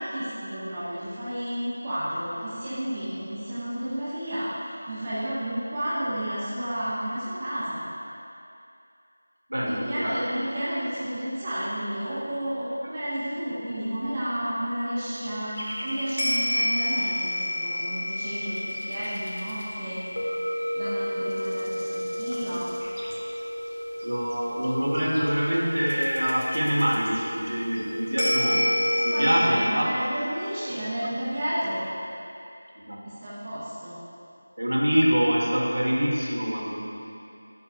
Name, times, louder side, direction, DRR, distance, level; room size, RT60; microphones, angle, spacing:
voice 1, 0.0-7.8 9.6-20.0 20.8-22.7 29.1-31.9 33.0-34.0, equal, 15° right, -11 dB, 0.7 m, -31 dB
voice 2, 9.5-10.1 24.0-29.9 32.9-33.0 34.6-36.8, equal, 85° right, -4 dB, 1.6 m, -25 dB
sound 1, 15.5-29.5, left 1 dB, 85° left, 1.4 m, -30 dB
8.5 x 7.1 x 2.5 m, 2.6 s
figure-of-eight pair, 180°, 0 cm